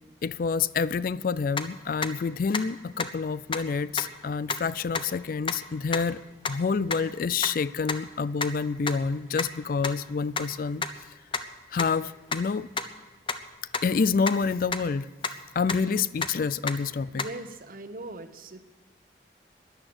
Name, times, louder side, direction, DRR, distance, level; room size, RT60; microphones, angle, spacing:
voice 1, 0.2-10.8 11.7-12.7 13.8-15.1 15.6-17.2, left 5 dB, 50° left, 0.4 m, -28 dB
sound 1, 1.5-1.6 2.0-2.1 2.5-2.6 3.0-3.1 3.5-3.6 4.0-4.1 4.5-4.6 4.9-5.0 5.5-5.6 5.9-6.0 6.4-6.5 6.9-7.0 7.4-7.5 7.9-8.0 8.4-8.5 8.9-9.0 9.4-9.5 9.8-9.9 10.4-10.5 10.8-10.9 11.3-11.4 11.8-11.9 12.3-12.4 12.8-12.9 13.3-13.4 13.7-13.8 14.3-14.4 14.7-14.8 15.2-15.3 15.7-15.8 16.2-16.3 16.7-16.8 17.2-17.3, left 5 dB, 30° left, 0.8 m, -28 dB
voice 2, 17.1-18.6, right 2 dB, 50° right, 1.0 m, -40 dB
13.0 x 11.0 x 7.8 m
head